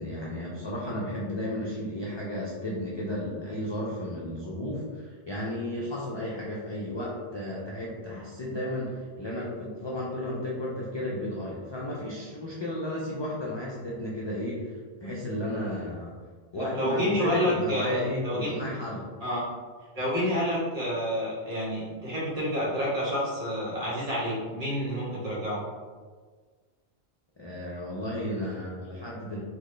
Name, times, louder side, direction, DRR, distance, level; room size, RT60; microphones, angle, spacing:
voice 1, 0.0-14.7 15.0-16.1 16.5-19.1 27.4-29.4, left 1 dB, 40° left, -5 dB, 0.4 m, -33 dB
voice 2, 16.5-18.6 19.2-19.4 19.9-25.6, equal, 40° right, -7 dB, 1.2 m, -29 dB
3.9 x 2.1 x 3.2 m, 1.5 s
omnidirectional pair, 1.0 m